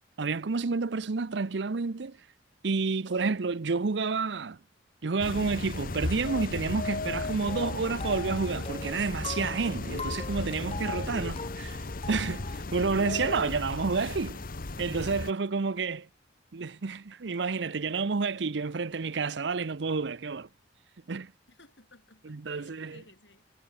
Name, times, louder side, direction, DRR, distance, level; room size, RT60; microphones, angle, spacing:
voice 1, 0.2-2.2 2.6-4.6 5.0-14.4 14.8-16.0 16.5-20.5 21.1-21.3 22.3-22.9, right 4 dB, 65° right, 0.7 m, -30 dB
sound 1, 5.2-15.3, left 2 dB, 50° left, 1.0 m, -35 dB
Music Box Happy Birthday, 7.5-12.6, left 4 dB, 30° left, 2.1 m, -41 dB
voice 2, 15.4-16.0 21.5-23.4, left 2 dB, 75° left, 7.2 m, -59 dB
head